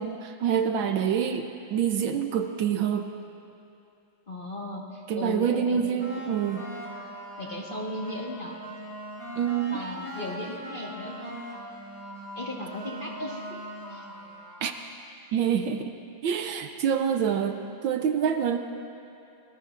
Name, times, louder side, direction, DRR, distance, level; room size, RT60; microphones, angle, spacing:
voice 1, 0.0-3.1 5.1-6.6 9.4-9.8 14.6-14.7 15.3-15.9 16.2-17.6 17.8-18.6, right 8 dB, 70° right, 6 dB, 1.4 m, -26 dB
voice 2, 4.3-6.0 7.4-8.6 9.7-11.4 12.3-13.6 13.9-14.1, left 1 dB, 30° left, -3 dB, 1.3 m, -36 dB
sound 1, 6.0-14.8, equal, 50° left, 3.8 m, -40 dB
30.0 x 19.5 x 2.5 m, 2.7 s
omnidirectional pair, 2.3 m